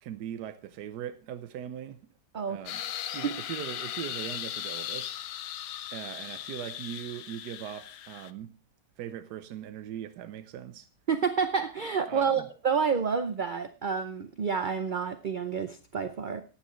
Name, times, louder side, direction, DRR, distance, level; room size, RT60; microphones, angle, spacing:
voice 1, 0.0-2.0 2.5-2.8 3.1-5.2 5.9-8.5 9.0-10.9 12.1-12.5, right 10 dB, 85° right, 1.3 m, -40 dB
sound 1, 2.7-8.3, left 11 dB, 85° left, 1.3 m, -38 dB
voice 2, 11.1-16.4, right 6 dB, 55° right, 0.5 m, -29 dB
14.5 x 9.9 x 3.1 m
omnidirectional pair, 1.7 m